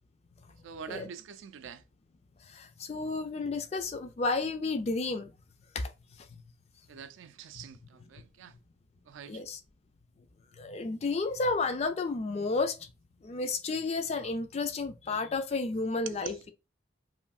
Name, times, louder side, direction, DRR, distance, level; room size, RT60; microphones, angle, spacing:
voice 1, 0.6-1.8 6.9-8.6 9.0-9.4 16.1-16.4, right 7 dB, 85° right, 0.4 m, -45 dB
voice 2, 2.8-5.3 5.7-5.9 7.6-7.7 9.3-9.6 10.6-12.8 13.2-16.5, left 3 dB, 35° left, 0.3 m, -31 dB
3.1 x 2.6 x 2.3 m
head